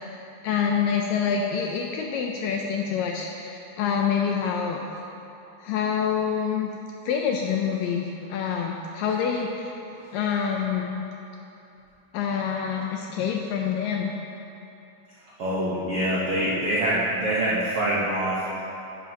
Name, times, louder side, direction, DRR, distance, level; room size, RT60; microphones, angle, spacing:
voice 1, 0.4-4.8 5.6-6.7 7.1-9.7 10.1-11.0 12.1-14.1, left 7 dB, 85° left, 1 dB, 2.0 m, -26 dB
voice 2, 15.4-18.6, right 1 dB, 90° right, -7 dB, 1.2 m, -25 dB
11.0 x 11.0 x 2.9 m, 2.9 s
omnidirectional pair, 4.4 m